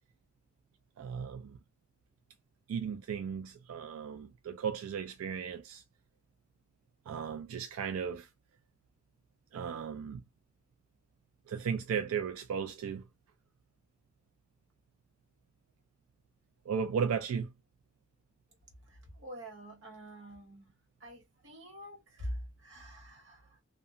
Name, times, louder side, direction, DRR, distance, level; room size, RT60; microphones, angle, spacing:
voice 1, 1.0-1.6 2.7-5.8 7.1-8.3 9.5-10.2 11.5-13.0 16.7-17.5, right 7 dB, 85° right, 0.3 m, -35 dB
voice 2, 18.9-20.7 21.0-23.5, equal, 60° right, 0.9 m, -45 dB
2.7 x 2.2 x 2.5 m
head